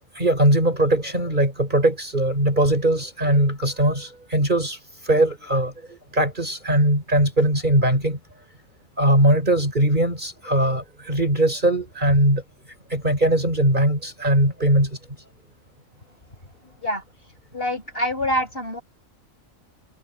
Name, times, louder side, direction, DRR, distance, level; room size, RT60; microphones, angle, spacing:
voice 1, 0.2-4.8 5.0-8.2 9.0-12.4 12.9-15.0 16.6-16.7, right 1 dB, 35° right, 5.6 m, -20 dB
voice 2, 17.5-18.8, equal, 45° left, 7.4 m, -25 dB
omnidirectional pair, 1.3 m